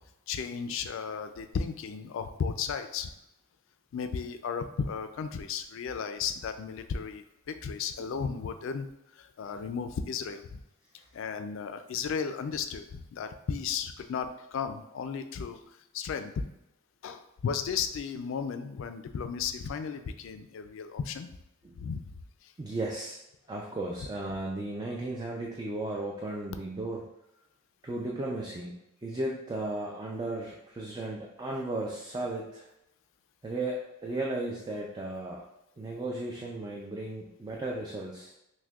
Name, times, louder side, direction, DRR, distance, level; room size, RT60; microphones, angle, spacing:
voice 1, 0.3-3.1 3.9-8.9 9.1-10.6 11.1-15.6 15.9-16.4 17.0-21.3 21.8-22.2 22.4-22.5, left 6 dB, 60° left, 8 dB, 0.3 m, -34 dB
voice 2, 22.6-23.2 23.5-27.0 27.8-32.7 33.4-35.4 35.8-38.3, right 2 dB, 20° right, -2 dB, 0.3 m, -35 dB
6.0 x 2.2 x 2.3 m, 0.88 s
head